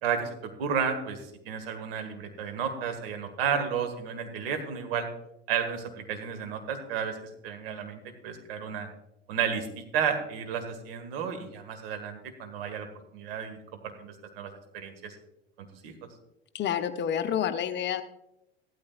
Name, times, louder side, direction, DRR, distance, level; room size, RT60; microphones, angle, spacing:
voice 1, 0.0-5.1 5.5-8.9 9.3-12.9 13.1-13.6 13.8-15.1 15.6-15.9, right 7 dB, 65° right, 6 dB, 1.9 m, -32 dB
voice 2, 16.5-18.0, left 9 dB, 35° left, 10 dB, 0.8 m, -29 dB
15.0 x 12.5 x 2.5 m, 0.84 s
hypercardioid pair, 75°, 31 cm